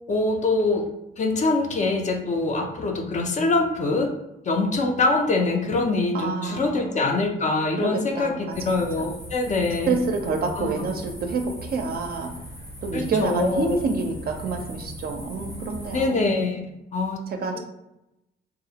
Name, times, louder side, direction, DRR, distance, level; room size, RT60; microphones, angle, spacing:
voice 1, 0.1-0.9 1.2-4.1 4.5-10.0 10.5-10.9 12.9-13.8 15.9-16.7 16.9-17.2, left 3 dB, 35° left, 3 dB, 0.4 m, -24 dB
voice 2, 6.1-7.1 7.8-9.1 9.9-12.3 12.8-16.3 17.4-17.6, right 4 dB, 50° right, 4 dB, 0.4 m, -28 dB
sound 1, 8.5-16.1, equal, 85° left, 1.3 m, -39 dB
2.4 x 2.0 x 2.7 m, 0.90 s
cardioid pair, 90°, 20 cm